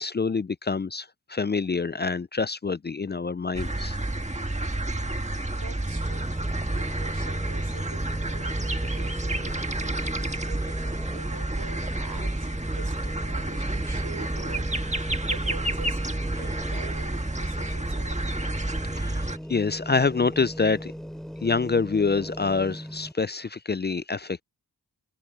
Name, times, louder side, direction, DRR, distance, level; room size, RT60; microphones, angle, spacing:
voice 1, 0.0-4.0 19.0-20.9 21.4-24.4, left 4 dB, 30° left, 0.4 m, -26 dB
sound 1, 3.5-19.4, right 2 dB, 15° right, 1.6 m, -29 dB
voice 2, 5.5-6.3 6.7-16.0 16.3-18.4, right 5 dB, 80° right, 4.9 m, -46 dB
sound 2, 5.9-23.1, equal, ahead, 2.7 m, -39 dB
wide cardioid pair, 85°, 39 cm